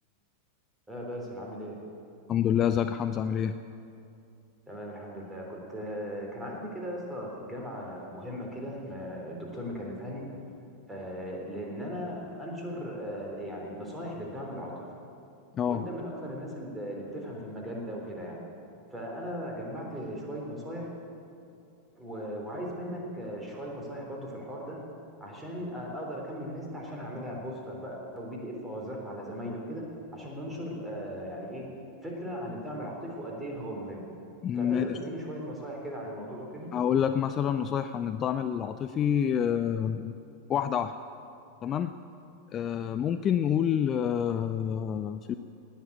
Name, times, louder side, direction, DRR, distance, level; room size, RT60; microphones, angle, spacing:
voice 1, 0.9-1.8 4.7-10.2 10.9-14.9 15.7-18.4 18.9-20.9 21.9-24.8 25.2-29.8 30.1-31.6 32.0-34.0 34.5-36.7, equal, 10° right, -2 dB, 3.6 m, -38 dB
voice 2, 2.3-3.6 15.5-15.8 34.4-35.0 36.7-40.1 40.5-40.9 41.6-41.9 42.5-45.3, left 9 dB, 30° left, 10 dB, 0.4 m, -27 dB
18.5 x 7.4 x 8.6 m, 2.6 s
figure-of-eight pair, 90°, 0 cm